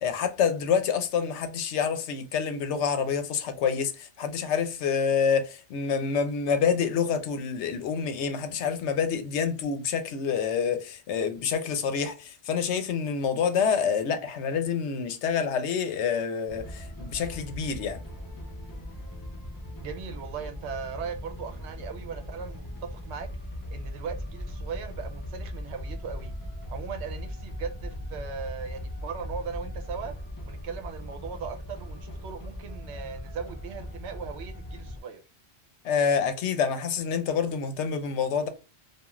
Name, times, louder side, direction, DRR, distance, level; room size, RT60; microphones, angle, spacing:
voice 1, 0.0-18.0 35.8-38.5, left 6 dB, 80° left, 0.9 m, -27 dB
sound 1, 16.5-35.0, left 1 dB, 30° left, 0.4 m, -39 dB
voice 2, 19.8-23.3 23.7-26.3 26.7-30.1 30.4-35.2, right 6 dB, 75° right, 0.9 m, -38 dB
2.4 x 2.3 x 2.9 m
omnidirectional pair, 1.2 m